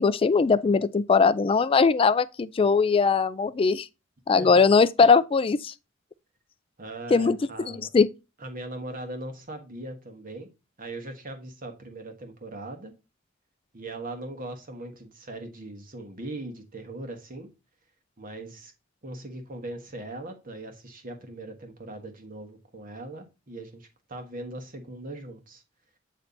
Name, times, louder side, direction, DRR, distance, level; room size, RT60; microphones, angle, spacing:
voice 1, 0.0-3.9 4.3-5.7 7.1-7.4 7.7-8.1, left 5 dB, 30° left, 0.3 m, -20 dB
voice 2, 6.8-7.9 8.4-10.5 10.8-12.9 13.7-17.5 18.2-18.7 19.0-25.6, right 2 dB, 45° right, 1.5 m, -39 dB
8.5 x 3.3 x 3.9 m
head